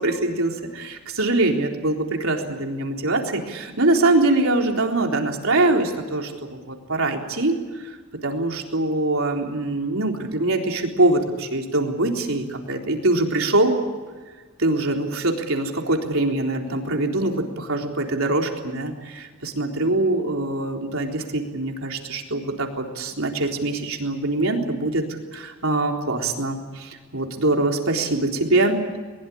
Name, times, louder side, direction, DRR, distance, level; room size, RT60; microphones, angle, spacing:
voice 1, 0.0-7.6 8.2-13.7 14.6-25.1 25.3-28.8, right 2 dB, 70° right, 2 dB, 3.9 m, -23 dB
22.0 x 21.5 x 8.7 m, 1.4 s
head